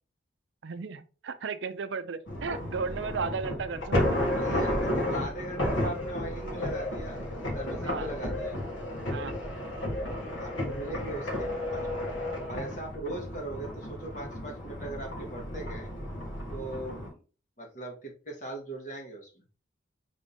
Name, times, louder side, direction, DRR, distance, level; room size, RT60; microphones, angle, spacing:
voice 1, 0.6-4.3 7.8-8.1 9.1-9.4, right 5 dB, 70° right, 0.4 m, -35 dB
sound 1, 2.3-17.1, left 1 dB, 85° left, 1.4 m, -32 dB
voice 2, 4.3-7.2 7.5-8.6 10.0-12.1 12.5-15.9 16.5-17.2 17.6-19.4, right 2 dB, 40° left, 1.5 m, -40 dB
5.0 x 3.5 x 2.7 m
head